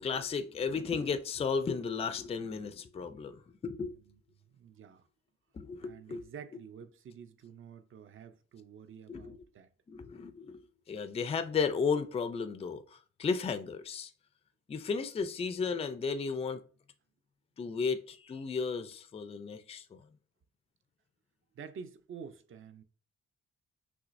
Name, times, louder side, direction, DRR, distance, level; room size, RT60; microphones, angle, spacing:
voice 1, 0.0-3.9 5.5-6.2 9.1-9.4 9.9-10.6 10.9-14.1 14.7-16.6 17.6-20.0, left 5 dB, 20° left, 0.3 m, -34 dB
voice 2, 3.9-4.2 4.5-5.1 5.8-9.7 21.5-22.8, right 7 dB, 45° right, 0.5 m, -49 dB
6.0 x 3.1 x 2.5 m
wide cardioid pair, 145°, 29 cm